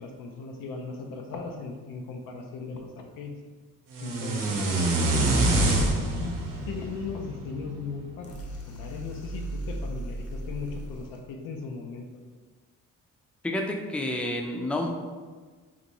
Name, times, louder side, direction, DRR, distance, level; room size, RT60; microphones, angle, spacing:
voice 1, 0.0-3.3 4.0-4.8 5.1-8.3 8.7-12.1, left 4 dB, 85° left, 3 dB, 0.5 m, -38 dB
sound 1, 3.9-8.0, right 2 dB, 80° right, 0.7 m, -26 dB
Toy Elephant, 8.2-11.2, right 1 dB, 45° left, 0.8 m, -36 dB
voice 2, 13.4-14.9, left 1 dB, 5° left, 2 dB, 0.4 m, -29 dB
3.9 x 2.2 x 2.9 m, 1.4 s
supercardioid pair, 65°, 32 cm